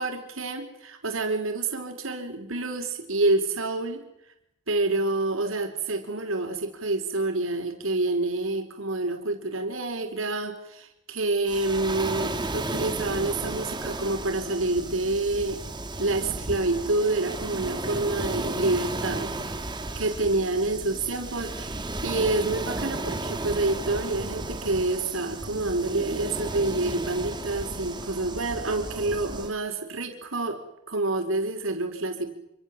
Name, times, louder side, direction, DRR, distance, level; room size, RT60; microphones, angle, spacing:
voice 1, 0.0-4.1 4.7-15.6 16.0-19.6 19.9-32.3, right 2 dB, 85° right, 5 dB, 4.4 m, -28 dB
Waves surf, 11.5-29.5, right 2 dB, 20° right, 2.4 m, -34 dB
27.0 x 26.0 x 7.5 m, 0.82 s
head